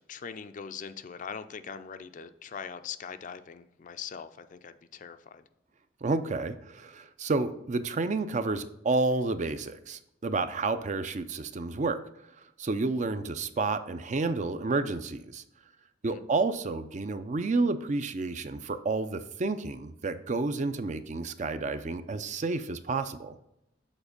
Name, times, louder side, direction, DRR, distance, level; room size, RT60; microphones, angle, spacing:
voice 1, 0.0-5.4 16.0-16.2, left 6 dB, 45° left, 11 dB, 0.4 m, -41 dB
voice 2, 6.0-12.0 12.6-15.4 16.0-23.4, right 3 dB, 40° right, 11 dB, 0.4 m, -30 dB
7.2 x 4.2 x 5.3 m, 0.82 s
head